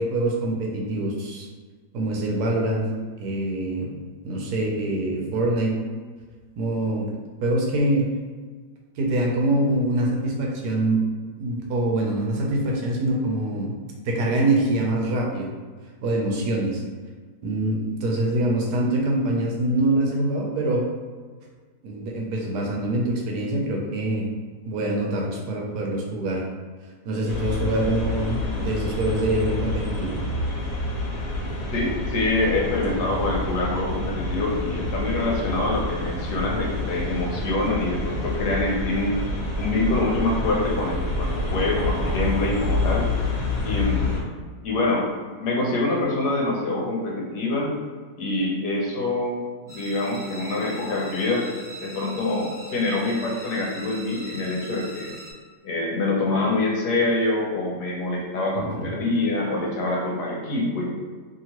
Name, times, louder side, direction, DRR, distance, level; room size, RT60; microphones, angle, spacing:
voice 1, 0.0-1.5 1.9-2.9 3.2-3.9 4.2-5.7 6.6-7.1 7.4-8.1 9.0-11.0 11.4-13.7 14.0-15.5 16.0-16.8 17.4-20.8 21.8-24.2 24.6-26.5 27.0-30.1 58.6-58.9, right 1 dB, 75° right, -1 dB, 1.1 m, -24 dB
sound 1, 27.3-44.2, left 2 dB, 65° left, 1.0 m, -28 dB
voice 2, 31.7-39.2 39.6-43.1 43.6-44.3 44.6-45.1 45.4-47.7 48.2-49.4 49.7-51.5 51.8-55.1 55.6-60.9, left 2 dB, 80° left, -2 dB, 1.3 m, -25 dB
sound 2, 49.7-55.3, right 1 dB, 10° right, 1.2 m, -41 dB
2.9 x 2.8 x 2.8 m, 1.5 s
omnidirectional pair, 1.8 m